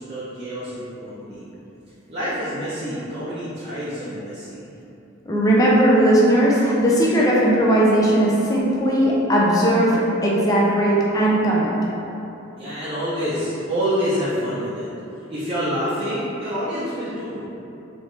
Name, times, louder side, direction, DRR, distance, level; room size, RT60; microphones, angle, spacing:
voice 1, 0.0-1.4 2.1-4.6 12.6-14.9 15.3-17.4, equal, 30° right, -11 dB, 0.6 m, -27 dB
voice 2, 5.3-11.7, right 1 dB, 15° left, -5 dB, 0.5 m, -18 dB
4.3 x 2.9 x 3.3 m, 2.9 s
head